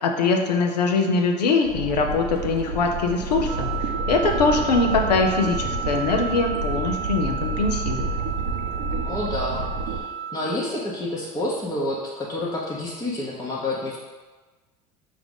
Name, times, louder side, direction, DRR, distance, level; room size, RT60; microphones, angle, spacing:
voice 1, 0.0-3.7 4.1-8.1, left 4 dB, 80° left, 4 dB, 0.5 m, -22 dB
sound 1, 1.6-10.0, right 3 dB, 60° right, 0.6 m, -29 dB
Wind instrument woodwind instrument, 3.5-10.4, right 6 dB, 25° right, 0.8 m, -32 dB
voice 2, 9.0-10.1 10.3-14.0, left 1 dB, 15° left, -5 dB, 0.8 m, -29 dB
5.9 x 2.5 x 3.4 m, 1.3 s
hypercardioid pair, 70°, 21 cm